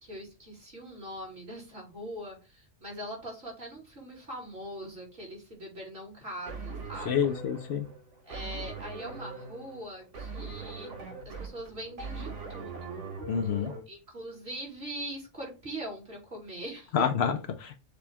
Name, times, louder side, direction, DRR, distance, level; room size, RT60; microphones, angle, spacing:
voice 1, 0.0-7.4 8.2-10.9 11.2-13.0 13.9-17.1, right 1 dB, 50° right, 2.3 m, -42 dB
sound 1, 6.5-13.8, right 4 dB, 85° right, 1.6 m, -41 dB
voice 2, 7.1-7.9 13.3-13.7 16.9-17.8, left 7 dB, 65° left, 0.8 m, -28 dB
6.8 x 2.3 x 3.4 m
omnidirectional pair, 1.2 m